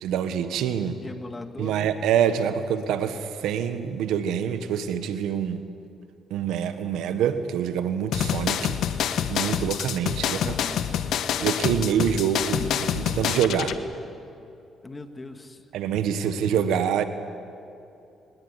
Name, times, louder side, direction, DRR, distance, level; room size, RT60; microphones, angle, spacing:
voice 1, 0.0-1.0 1.6-5.6 6.3-8.8 9.3-10.5 11.4-12.6 13.0-13.8 15.7-17.0, right 8 dB, 85° right, 10 dB, 1.4 m, -25 dB
voice 2, 1.0-1.8 10.4-10.9 12.5-12.8 14.8-15.6, left 3 dB, 25° left, 7 dB, 2.0 m, -38 dB
sound 1, 8.1-13.8, left 9 dB, 75° left, 1.2 m, -27 dB
23.0 x 20.5 x 9.8 m, 2.7 s
cardioid pair, 90°, 0 cm